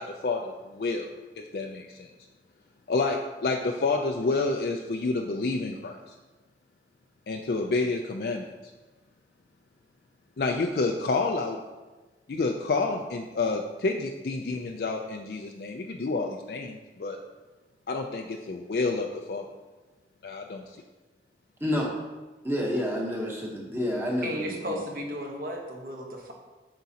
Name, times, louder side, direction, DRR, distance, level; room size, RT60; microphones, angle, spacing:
voice 1, 0.0-2.1 2.9-6.1 7.3-8.5 10.4-11.6 12.3-17.2 17.9-19.4 20.2-20.6, left 3 dB, 60° left, 2 dB, 0.4 m, -29 dB
voice 2, 21.6-22.0 22.4-24.8, left 1 dB, 15° right, -2 dB, 1.0 m, -29 dB
voice 3, 24.2-26.3, equal, 50° right, 0 dB, 1.1 m, -34 dB
7.7 x 6.0 x 2.8 m, 1.2 s
head